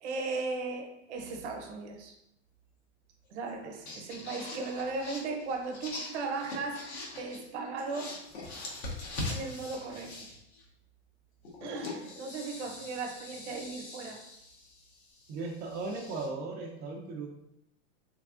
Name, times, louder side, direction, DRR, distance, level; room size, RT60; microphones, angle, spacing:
voice 1, 0.0-2.1 3.3-6.9 7.2-8.2 9.3-10.1 11.6-14.2, right 3 dB, 75° right, 3 dB, 0.8 m, -37 dB
sound 1, 1.2-1.7 3.5-3.6 3.8-7.5 7.8-10.6 11.4-16.3, left 2 dB, 65° left, 1.2 m, -42 dB
voice 2, 15.3-17.3, right 3 dB, 30° right, 0 dB, 0.4 m, -37 dB
3.3 x 3.3 x 2.4 m, 0.81 s
supercardioid pair, 130°, 35 cm